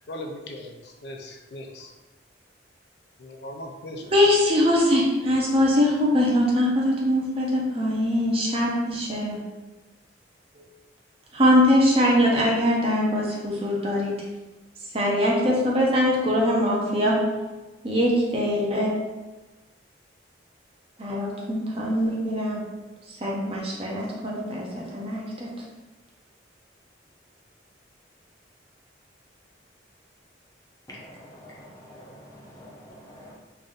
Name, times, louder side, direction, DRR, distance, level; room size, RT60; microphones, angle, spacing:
voice 1, 0.1-1.9 3.2-4.0, left 1 dB, 60° left, 2 dB, 0.4 m, -38 dB
voice 2, 4.1-9.4 11.3-14.2 14.9-17.2 17.8-18.9 21.0-22.6 23.2-25.5, left 1 dB, 30° right, -3 dB, 0.7 m, -22 dB
voice 3, 30.9-33.3, equal, 15° left, -5 dB, 0.7 m, -46 dB
3.3 x 2.6 x 3.8 m, 1.1 s
head